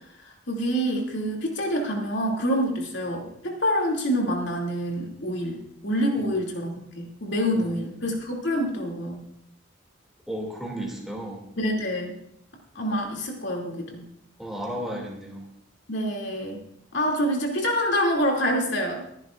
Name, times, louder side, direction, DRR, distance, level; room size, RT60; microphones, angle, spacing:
voice 1, 0.5-9.2 11.6-12.2 12.7-14.1 15.9-16.6 16.9-19.0, equal, 65° left, 0 dB, 2.8 m, -26 dB
voice 2, 10.3-11.4 14.4-15.4, right 1 dB, ahead, -1 dB, 2.6 m, -34 dB
23.0 x 10.5 x 2.6 m, 0.74 s
head